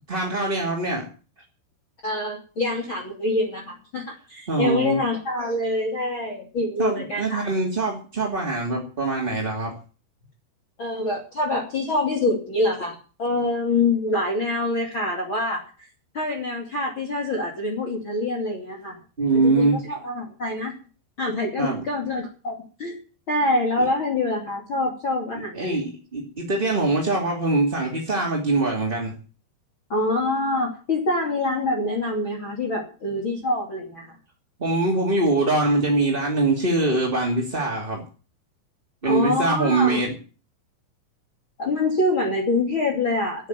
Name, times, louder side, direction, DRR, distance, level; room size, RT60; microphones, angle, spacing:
voice 1, 0.1-1.1 4.5-5.0 6.8-9.7 19.2-19.8 21.6-21.8 23.8-23.9 25.3-29.1 34.6-38.0 39.0-40.1, right 2 dB, 15° right, -1 dB, 2.0 m, -23 dB
voice 2, 2.0-7.5 10.8-15.9 16.1-19.0 19.3-20.7 21.2-23.0 23.3-25.8 29.9-34.1 39.0-40.0 41.6-43.5, left 2 dB, 30° left, 1 dB, 3.1 m, -25 dB
13.0 x 9.4 x 9.3 m, 0.37 s
omnidirectional pair, 4.8 m